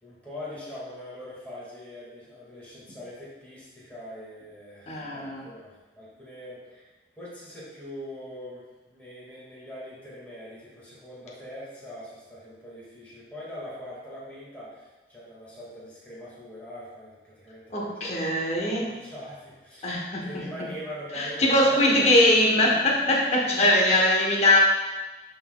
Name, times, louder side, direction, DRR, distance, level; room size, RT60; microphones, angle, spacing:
voice 1, 0.0-22.2 23.6-24.0, left 1 dB, 10° left, -8 dB, 1.7 m, -42 dB
voice 2, 4.9-5.5 17.7-18.9 19.8-20.5 21.1-24.6, left 1 dB, 40° left, -2 dB, 1.0 m, -22 dB
11.5 x 3.9 x 2.3 m, 1.2 s
head